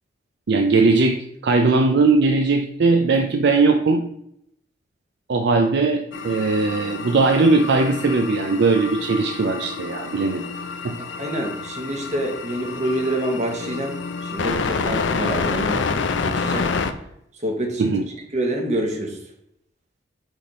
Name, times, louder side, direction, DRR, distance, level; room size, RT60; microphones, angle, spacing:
voice 1, 0.5-4.0 5.3-10.4 10.8-11.0 17.8-18.1, right 3 dB, 65° right, 5 dB, 0.5 m, -19 dB
sound 1, 6.1-16.9, left 4 dB, 75° left, 0.5 m, -28 dB
voice 2, 11.2-15.9 16.2-16.7 17.3-18.0 18.3-19.2, right 1 dB, 40° right, 2 dB, 1.3 m, -27 dB
6.2 x 3.4 x 5.4 m, 0.74 s
head